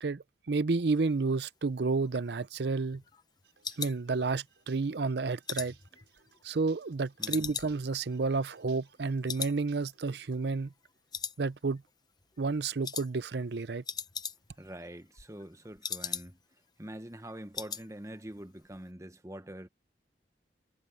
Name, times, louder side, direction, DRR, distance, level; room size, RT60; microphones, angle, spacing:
voice 1, 0.0-3.0 3.8-5.7 6.4-10.7 11.4-11.8 12.4-13.8, right 4 dB, 65° right, 0.6 m, -31 dB
sound 1, 1.9-4.7 5.1-6.8 7.2-9.0 9.3-9.6 9.9-10.0 10.4-10.9 11.1-11.9 12.2-12.5 12.8-13.1 13.4-13.5 13.7-14.7 15.0-16.6 16.9-17.0 17.3-17.9 18.2-18.4 18.7-18.8, left 7 dB, 25° left, 0.9 m, -40 dB
sound 2, 3.4-10.4, right 8 dB, 85° right, 5.6 m, -64 dB
voice 2, 7.2-7.5 14.6-16.4 16.8-19.7, right 1 dB, 15° right, 1.0 m, -45 dB
head